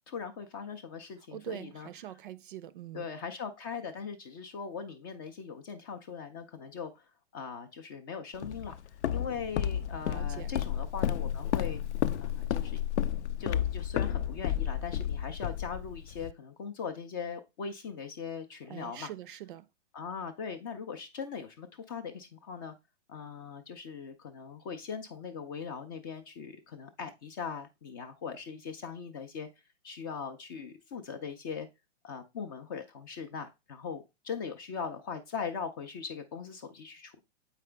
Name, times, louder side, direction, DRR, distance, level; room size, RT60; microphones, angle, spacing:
voice 1, 0.1-1.9 2.9-7.0 7.3-8.8 9.1-11.8 12.2-12.8 13.4-19.1 19.9-22.7 23.1-29.5 29.8-31.7 32.0-37.2, left 6 dB, 20° left, 0.4 m, -40 dB
voice 2, 1.3-3.1 10.1-10.5 18.7-19.7, right 12 dB, 45° right, 0.5 m, -43 dB
Walk footsteps, 8.4-16.3, left 10 dB, 70° left, 0.6 m, -32 dB
7.8 x 4.8 x 3.3 m
hypercardioid pair, 140°, 36 cm